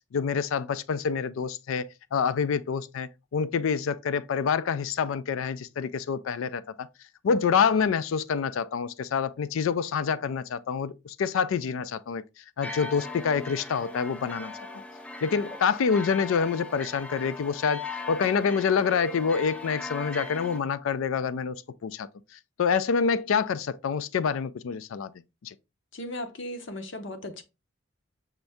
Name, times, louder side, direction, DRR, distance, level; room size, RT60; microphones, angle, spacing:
voice 1, 0.1-6.9 7.2-12.2 12.6-14.5 15.2-22.1 22.6-25.1 25.4-25.5, left 6 dB, 75° left, 0.4 m, -27 dB
sound 1, 12.6-20.6, left 3 dB, 5° left, 0.3 m, -39 dB
voice 2, 25.9-27.4, left 1 dB, 60° left, 0.7 m, -36 dB
5.7 x 2.6 x 3.4 m
head